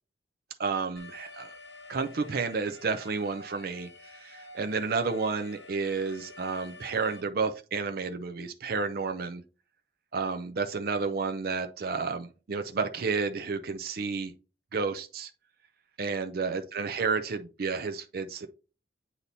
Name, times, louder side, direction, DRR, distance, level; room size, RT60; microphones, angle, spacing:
voice 1, 0.6-1.5 1.9-9.4 10.1-14.3 14.7-15.3 16.0-18.5, right 4 dB, 55° right, 0.5 m, -31 dB
Alarm, 1.0-7.2, left 2 dB, 85° left, 0.9 m, -49 dB
8.3 x 2.8 x 4.0 m
head